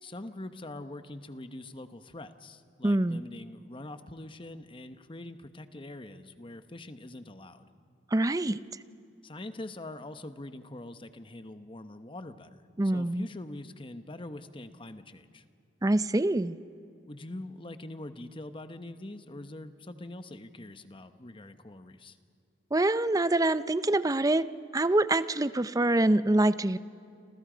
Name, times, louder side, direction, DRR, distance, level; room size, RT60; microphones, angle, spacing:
voice 1, 0.0-7.7 9.2-12.6 12.9-15.4 17.1-22.2, left 1 dB, 30° left, 10 dB, 1.0 m, -43 dB
voice 2, 2.8-3.2 8.1-8.6 12.8-13.3 15.8-16.6 22.7-26.8, right 1 dB, 20° right, 14 dB, 0.5 m, -25 dB
28.5 x 27.0 x 5.1 m, 2.6 s
head